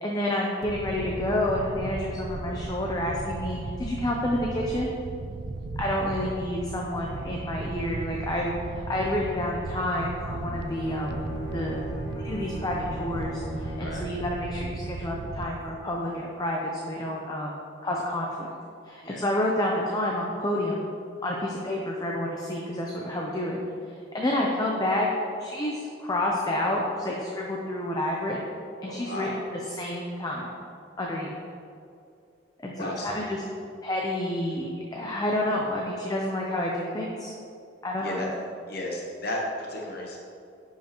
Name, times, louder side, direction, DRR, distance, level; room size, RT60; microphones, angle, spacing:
voice 1, 0.0-4.9 5.8-11.2 11.5-11.8 12.1-17.6 17.8-18.5 18.8-20.9 21.2-23.6 23.9-25.1 25.4-28.5 28.8-29.5 29.8-30.5 31.0-31.4 32.6-33.4 33.8-37.3 37.8-38.2, left 1 dB, 20° left, -2 dB, 0.6 m, -29 dB
sound 1, 0.6-15.7, right 2 dB, 55° right, 0.4 m, -36 dB
Bowed string instrument, 10.2-14.0, equal, 75° left, 1.8 m, -37 dB
voice 2, 28.8-29.4 32.8-33.1 38.0-38.3 38.7-40.2, left 1 dB, 55° left, -1 dB, 0.9 m, -34 dB
10.0 x 5.6 x 3.0 m, 2.5 s
head